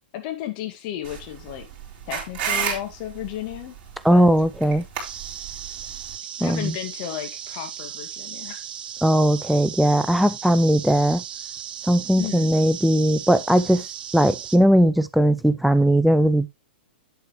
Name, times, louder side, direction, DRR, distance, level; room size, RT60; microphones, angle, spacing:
voice 1, 0.1-1.7 2.1-3.7 4.1-4.3 6.4-8.6 12.2-12.5, left 12 dB, 45° left, 2.1 m, -33 dB
sound 1, 1.0-6.2, right 7 dB, 35° right, 4.2 m, -32 dB
voice 2, 4.0-4.9 6.4-6.8 9.0-11.2 11.9-13.8 14.1-16.5, right 1 dB, ahead, 0.5 m, -18 dB
sound 2, 5.0-14.6, right 9 dB, 65° right, 0.8 m, -36 dB
8.2 x 8.0 x 3.1 m
hypercardioid pair, 115°, 5 cm